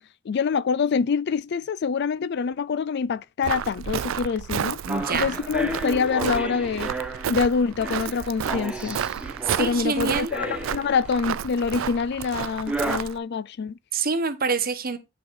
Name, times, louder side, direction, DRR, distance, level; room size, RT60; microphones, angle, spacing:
voice 1, 0.3-4.8 5.1-6.9 7.3-9.0 9.6-13.8, left 5 dB, 55° left, 0.4 m, -25 dB
Walk footsteps, 3.4-13.2, right 8 dB, 75° right, 0.4 m, -32 dB
voice 2, 4.8-5.4 9.4-10.3 13.9-15.0, right 4 dB, 45° right, 1.1 m, -26 dB
sound 1, 4.9-11.2 12.7-13.0, right 1 dB, 5° right, 1.1 m, -33 dB
9.5 x 4.1 x 4.7 m
head